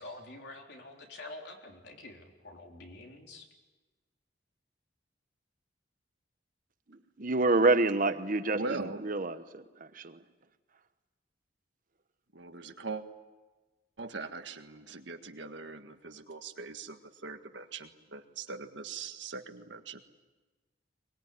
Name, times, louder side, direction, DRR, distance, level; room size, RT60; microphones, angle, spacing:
voice 1, 0.0-3.5, left 2 dB, 65° left, 1 dB, 3.9 m, -47 dB
voice 2, 6.9-10.2, right 2 dB, 45° right, 10 dB, 1.1 m, -28 dB
voice 3, 8.5-9.2 12.3-13.0 14.0-20.0, right 3 dB, 75° right, 7 dB, 1.7 m, -41 dB
23.5 x 21.0 x 9.6 m, 1.2 s
head